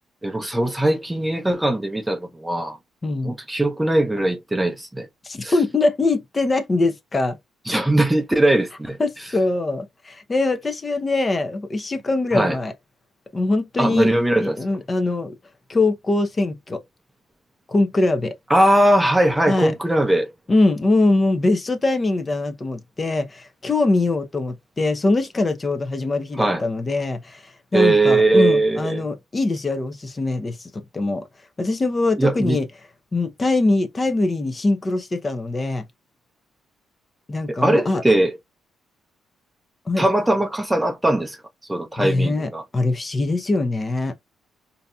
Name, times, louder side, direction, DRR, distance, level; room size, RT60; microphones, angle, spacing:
voice 1, 0.2-2.8 3.2-5.1 5.4-5.5 7.7-9.0 12.3-12.6 13.8-14.6 18.5-20.3 26.4-26.6 27.7-29.0 32.2-32.6 37.5-38.4 40.0-41.4 41.7-42.6, right 1 dB, 10° right, 0.6 m, -20 dB
voice 2, 3.0-3.3 5.2-7.4 9.0-12.7 13.3-14.1 14.4-15.3 15.7-16.8 17.7-18.3 19.5-19.7 20.5-31.3 31.6-32.7 33.1-35.8 37.3-38.0 39.9-40.1 42.0-44.1, left 2 dB, 30° left, 0.7 m, -22 dB
3.9 x 2.7 x 2.3 m
cardioid pair, 90°, 0 cm